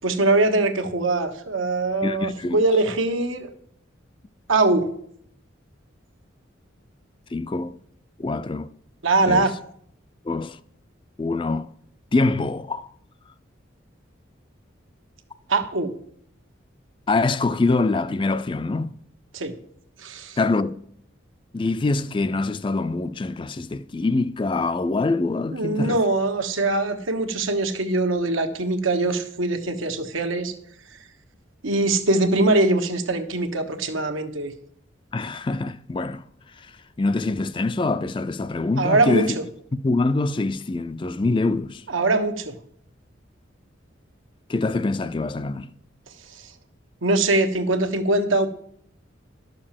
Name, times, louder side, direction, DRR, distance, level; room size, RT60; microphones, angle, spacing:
voice 1, 0.0-3.5 4.5-4.9 9.0-9.5 15.5-15.9 19.3-19.5 20.0-20.4 25.5-30.5 31.6-34.5 38.8-39.4 41.9-42.5 46.3-46.5 47.0-48.5, right 2 dB, 85° right, 1.2 m, -22 dB
voice 2, 2.0-2.6 7.3-7.8 8.2-8.7 9.3-9.5 10.3-10.6 11.2-11.7 12.1-12.9 17.1-19.0 20.4-20.8 21.5-26.0 35.1-36.2 37.0-39.3 39.8-41.8 44.5-45.7, left 3 dB, 25° left, 0.4 m, -24 dB
11.5 x 6.6 x 7.4 m
head